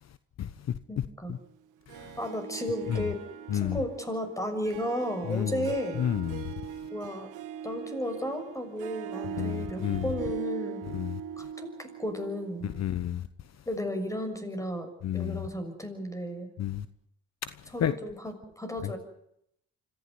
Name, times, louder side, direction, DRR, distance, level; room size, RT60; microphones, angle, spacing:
voice 1, 0.9-1.3 2.2-3.2 3.5-6.0 6.9-7.3 7.6-10.9 11.4-12.7 13.7-16.5 17.7-19.0, equal, 10° left, 6.5 m, -34 dB
Harp, 1.9-13.0, right 9 dB, 90° right, 1.9 m, -41 dB
voice 2, 5.3-5.6 6.0-6.4 9.4-10.1 10.9-11.2 12.8-13.3 15.0-15.4 16.6-16.9 17.4-17.5 17.8-17.9, left 10 dB, 60° left, 1.1 m, -30 dB
26.0 x 15.0 x 9.7 m
cardioid pair, 90°, 30 cm